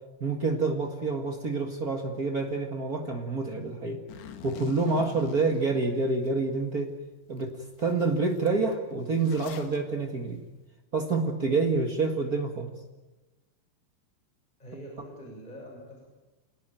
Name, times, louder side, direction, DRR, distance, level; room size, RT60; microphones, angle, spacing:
voice 1, 0.2-4.0 4.4-6.9 7.3-10.4 10.9-12.7, right 3 dB, 55° right, 3 dB, 1.0 m, -28 dB
Zipper (clothing), 4.1-6.3 6.8-6.9 7.4-7.5 7.7-9.8, left 8 dB, 85° left, 3.8 m, -46 dB
voice 2, 14.6-16.1, equal, 10° left, -1 dB, 6.8 m, -44 dB
27.5 x 18.5 x 9.2 m, 1.1 s
omnidirectional pair, 4.8 m